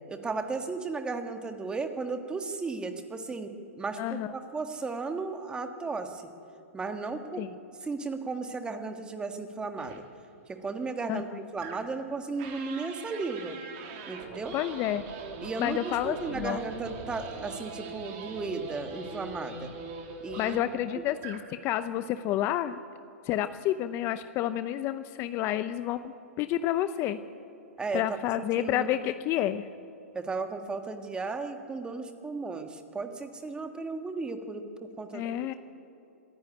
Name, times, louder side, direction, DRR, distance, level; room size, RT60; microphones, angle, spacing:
voice 1, 0.1-6.2 6.7-7.4 7.8-10.0 10.5-13.6 14.1-14.6 15.4-19.7 20.2-20.6 27.8-28.0 28.4-28.9 30.1-35.5, right 4 dB, 10° right, 6 dB, 1.6 m, -35 dB
voice 2, 4.0-4.3 7.4-7.5 11.1-11.3 14.5-15.0 15.6-16.6 20.4-22.8 23.2-27.2 27.9-29.7 35.1-35.5, left 12 dB, 35° left, 12 dB, 0.7 m, -29 dB
sound 1, 9.8-10.0 11.6-12.0 12.4-20.8 21.2-21.5, right 4 dB, 45° right, 2.8 m, -42 dB
25.5 x 10.5 x 9.9 m, 2.8 s
hypercardioid pair, 130°, 8 cm